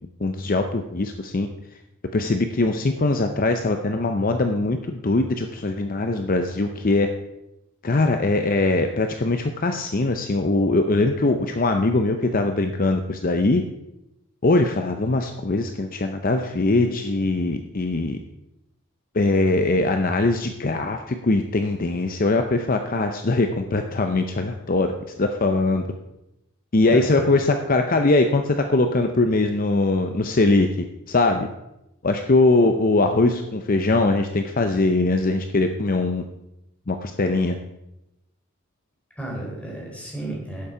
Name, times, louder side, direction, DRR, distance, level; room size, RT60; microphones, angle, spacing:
voice 1, 0.2-1.5 2.1-7.1 7.8-13.6 14.4-18.2 19.1-25.8 26.7-30.7 31.1-31.5 32.0-36.2 36.9-37.6, left 2 dB, 40° left, 6 dB, 0.6 m, -21 dB
voice 2, 26.8-27.3 39.2-40.7, right 1 dB, 5° left, -2 dB, 3.7 m, -33 dB
11.5 x 8.4 x 4.9 m, 0.90 s
head